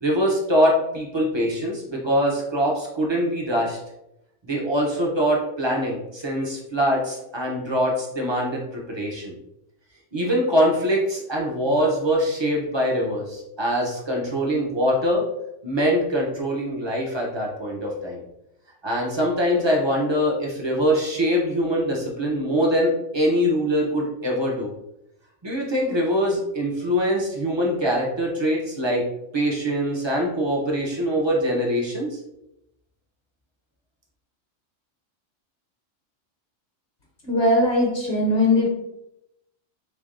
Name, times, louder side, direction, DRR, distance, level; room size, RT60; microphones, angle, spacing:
voice 1, 0.0-3.8 4.4-9.3 10.1-15.2 15.6-18.2 18.8-24.7 25.4-29.0 29.3-32.2, equal, 35° right, -2 dB, 0.5 m, -23 dB
voice 2, 37.2-38.7, left 1 dB, 60° left, -4 dB, 1.1 m, -20 dB
3.6 x 3.3 x 2.5 m, 0.84 s
omnidirectional pair, 1.3 m